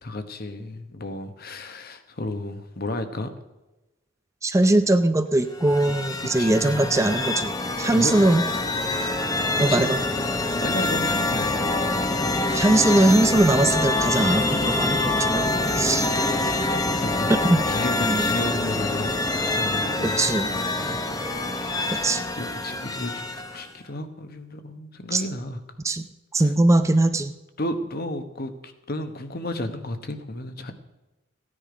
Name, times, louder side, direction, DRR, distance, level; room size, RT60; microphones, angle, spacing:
voice 1, 0.0-3.3 6.2-6.9 7.8-8.1 9.6-10.0 10.6-11.7 16.4-17.4 17.6-20.2 20.5-21.1 21.5-23.1 23.5-25.6 27.6-30.7, left 1 dB, 50° left, 8 dB, 1.2 m, -33 dB
voice 2, 4.4-7.5 7.8-8.4 9.6-10.0 12.3-15.5 15.7-16.1 17.4-17.6 18.0-18.3 20.2-20.5 21.9-22.2 25.1-25.2 25.8-26.1 26.3-27.3, right 2 dB, 15° right, 9 dB, 0.5 m, -21 dB
sound 1, 5.5-23.7, left 2 dB, 20° left, 0.9 m, -25 dB
15.5 x 10.0 x 5.1 m, 1.0 s
head